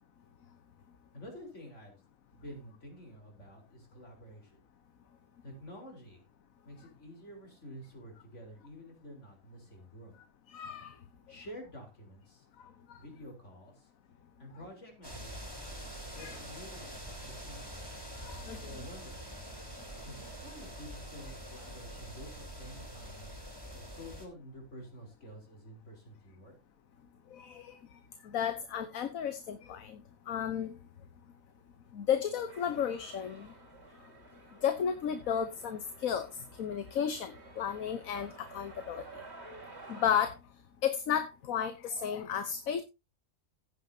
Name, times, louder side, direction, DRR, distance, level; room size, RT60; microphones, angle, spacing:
voice 1, 1.1-1.9 2.3-4.6 5.4-6.2 6.6-10.1 11.3-12.5 13.0-13.9 14.4-17.8 18.6-19.2 20.0-23.4 23.7-26.6, equal, 55° left, 2 dB, 4.6 m, -49 dB
voice 2, 10.5-10.9 12.6-13.0 16.2-16.4 18.2-18.8 27.3-27.8 28.2-30.0 30.3-30.8 31.9-33.5 34.6-36.3 36.6-39.0 39.9-40.3 40.8-42.8, left 8 dB, 75° left, 10 dB, 1.4 m, -33 dB
sound 1, 15.0-24.3, equal, 15° right, 3.3 m, -45 dB
sound 2, 32.5-40.3, right 3 dB, 50° right, 2.9 m, -52 dB
16.0 x 9.4 x 2.8 m, 0.25 s
omnidirectional pair, 1.4 m